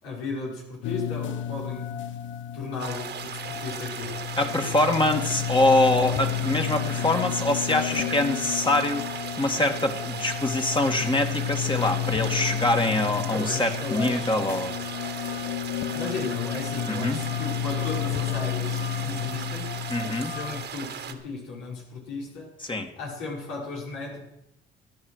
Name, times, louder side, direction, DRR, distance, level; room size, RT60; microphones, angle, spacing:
voice 1, 0.0-1.9 2.5-4.8 13.3-14.5 15.9-22.5 22.9-24.2, left 3 dB, 85° left, -3 dB, 5.6 m, -35 dB
sound 1, 0.8-20.7, left 10 dB, 70° left, 1.0 m, -31 dB
sound 2, 2.8-21.1, right 8 dB, 60° right, 1.8 m, -37 dB
voice 2, 4.4-14.7 16.9-17.2 19.9-20.3 22.7-22.9, left 2 dB, 25° left, 4 dB, 2.2 m, -24 dB
14.5 x 10.5 x 6.5 m, 0.88 s
supercardioid pair, 70°, 20 cm